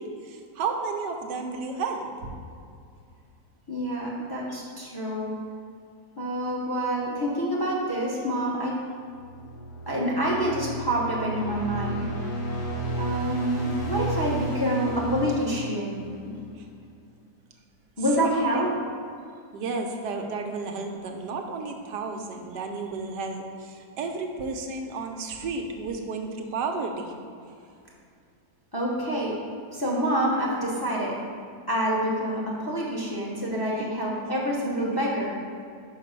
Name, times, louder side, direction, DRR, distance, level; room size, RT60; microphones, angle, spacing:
voice 1, 0.0-2.3 4.5-4.6 16.5-16.7 18.2-18.6 19.5-27.1 33.8-33.9, right 4 dB, 85° right, 4 dB, 1.4 m, -32 dB
voice 2, 3.7-5.4 6.2-8.8 9.9-12.1 13.0-16.0 16.2-16.4 18.0-18.7 28.7-29.4 29.7-31.2 31.7-35.3, equal, 15° left, -4 dB, 0.8 m, -27 dB
sound 1, 9.0-16.4, right 2 dB, 75° left, 1.7 m, -33 dB
5.7 x 5.6 x 5.3 m, 2.3 s
omnidirectional pair, 1.8 m